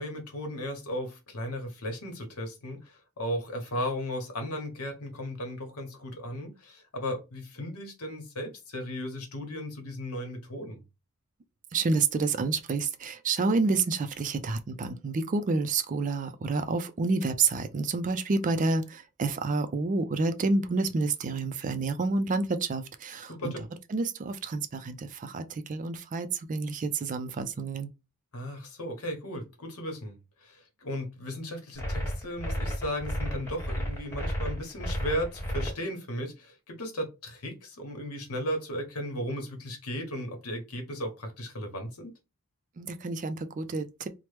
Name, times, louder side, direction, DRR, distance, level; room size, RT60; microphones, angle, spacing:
voice 1, 0.0-10.8 23.3-23.6 28.3-42.1, equal, 75° left, 1.0 m, -36 dB
voice 2, 11.7-23.5 23.9-27.9 42.8-44.1, right 3 dB, 35° right, 0.4 m, -29 dB
sound 1, 31.8-35.7, equal, 10° left, 1.0 m, -32 dB
3.0 x 2.1 x 3.2 m
head